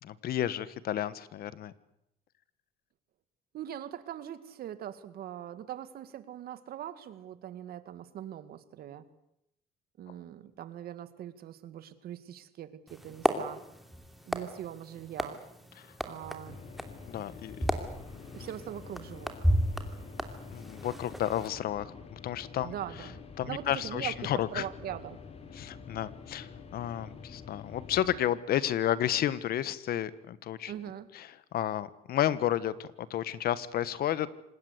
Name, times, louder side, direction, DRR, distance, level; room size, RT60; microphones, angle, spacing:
voice 1, 0.0-1.7 15.8-15.9 17.1-17.6 20.5-22.7 23.4-24.6 25.5-30.7 31.1-34.3, left 11 dB, 65° left, 17 dB, 1.4 m, -32 dB
voice 2, 3.5-9.0 10.0-13.6 14.3-15.4 16.0-16.6 18.3-19.4 22.6-23.2 23.5-25.2 30.7-31.1, right 11 dB, 65° right, 13 dB, 2.0 m, -41 dB
sound 1, 12.9-21.5, equal, ahead, 2.8 m, -34 dB
sound 2, 16.4-28.2, left 5 dB, 35° left, 3.3 m, -48 dB
26.5 x 20.0 x 8.2 m, 0.78 s
cardioid pair, 110°, 17 cm